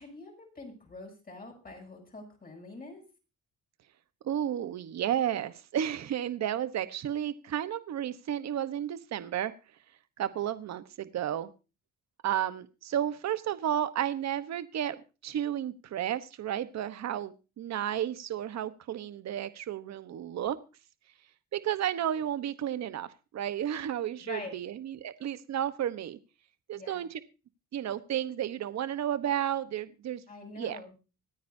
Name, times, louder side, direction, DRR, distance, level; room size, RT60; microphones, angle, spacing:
voice 1, 0.0-3.0 24.2-24.6 26.7-27.0 30.3-30.9, left 2 dB, 30° left, 1 dB, 7.5 m, -45 dB
voice 2, 4.2-9.5 10.2-11.5 12.2-15.0 15.2-20.6 21.5-23.1 23.3-26.2 26.7-27.2 27.7-30.2 30.6-30.8, right 10 dB, 60° right, 13 dB, 1.1 m, -32 dB
25.5 x 9.4 x 2.7 m, 0.31 s
cardioid pair, 90°, 30 cm